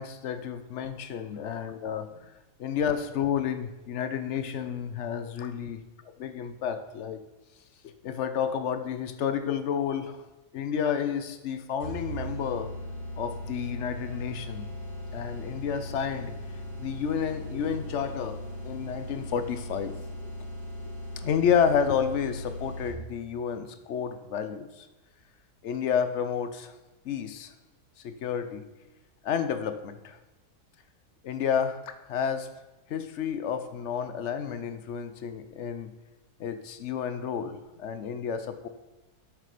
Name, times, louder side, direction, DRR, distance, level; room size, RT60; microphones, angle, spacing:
voice 1, 0.0-2.3 2.6-5.8 6.2-7.2 8.0-10.2 10.5-12.7 13.2-14.7 15.1-16.4 16.8-18.4 18.6-20.3 21.2-24.9 25.6-26.7 27.0-27.5 28.0-28.7 29.2-30.2 31.2-32.5 32.9-35.9 36.4-38.7, left 7 dB, 60° left, 10 dB, 0.8 m, -30 dB
sound 1, 11.8-23.2, equal, 25° left, 3.0 m, -38 dB
7.5 x 6.5 x 5.0 m, 1.1 s
omnidirectional pair, 1.7 m